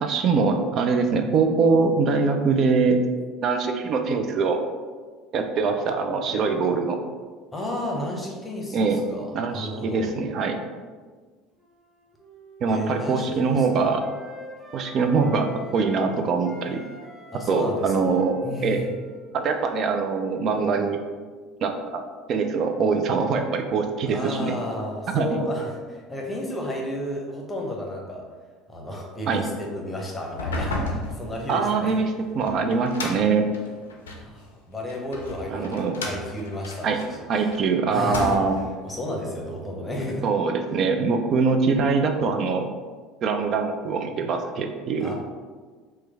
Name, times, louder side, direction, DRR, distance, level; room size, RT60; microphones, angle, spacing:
voice 1, 0.0-3.0 3.4-4.6 5.3-7.0 8.7-9.0 9.3-10.6 12.6-14.0 14.7-16.8 17.5-18.8 19.3-21.0 21.6-22.0 22.3-24.6 25.1-25.3 29.3-29.4 31.5-33.5 35.5-36.0 36.8-37.0 37.3-38.6 40.2-42.7 43.2-45.1, right 4 dB, 50° right, 5 dB, 0.3 m, -23 dB
voice 2, 7.5-8.8 9.1-9.3 9.5-10.1 12.7-13.9 17.3-18.9 24.1-28.2 28.7-31.9 34.2-37.2 37.9-38.4 38.8-40.3 45.0-45.1, left 1 dB, 15° left, -1 dB, 0.8 m, -32 dB
Wind instrument woodwind instrument, 11.6-16.1 16.4-20.9, left 1 dB, 15° right, 1.0 m, -45 dB
sound 1, 30.2-34.3 34.9-37.6 38.0-38.7, left 2 dB, 85° left, 0.4 m, -33 dB
3.0 x 2.2 x 3.4 m, 1.5 s
hypercardioid pair, 70°, 0 cm